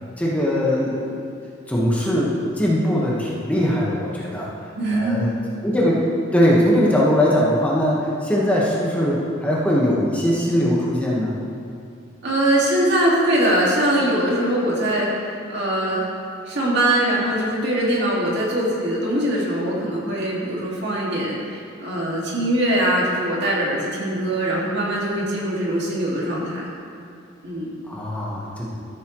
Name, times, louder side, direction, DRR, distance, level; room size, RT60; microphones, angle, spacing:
voice 1, 0.2-1.1 1.7-4.5 4.9-5.3 5.6-6.0 6.3-11.3 27.9-28.7, equal, 10° left, -6 dB, 1.4 m, -20 dB
voice 2, 4.7-5.1 12.2-16.1 16.5-26.6 27.4-27.8, right 1 dB, 60° right, -4 dB, 2.3 m, -22 dB
13.5 x 8.3 x 3.2 m, 2.5 s
head